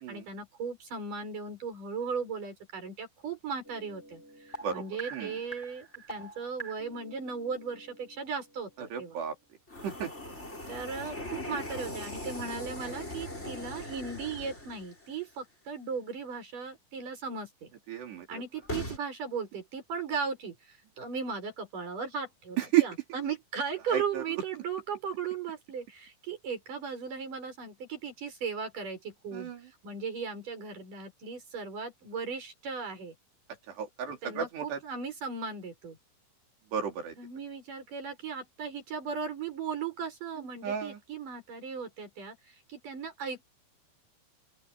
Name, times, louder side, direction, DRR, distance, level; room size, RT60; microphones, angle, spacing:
voice 1, 0.1-9.2 10.7-17.7 18.3-29.5 29.8-33.1 34.2-36.0 37.2-43.4, right 5 dB, 45° right, 7.8 m, -37 dB
sound 1, 3.6-8.4 9.7-15.1 18.6-19.0, equal, 15° left, 7.0 m, -41 dB
voice 2, 8.9-9.3 9.8-10.1 17.9-18.4 22.7-22.8 23.9-24.2 29.3-29.6 33.8-34.8 36.7-37.1 40.6-41.0, right 10 dB, 70° right, 5.9 m, -31 dB
open air
omnidirectional pair, 5.1 m